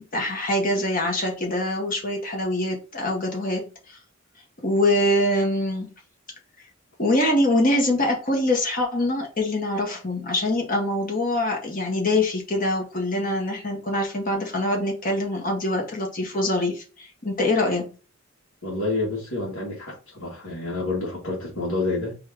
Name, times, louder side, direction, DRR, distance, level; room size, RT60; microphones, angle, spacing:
voice 1, 0.0-4.0 4.6-5.9 7.0-17.9, left 1 dB, 45° left, 1.6 m, -24 dB
voice 2, 18.6-22.2, left 2 dB, 80° left, 2.1 m, -28 dB
4.3 x 3.4 x 3.7 m
head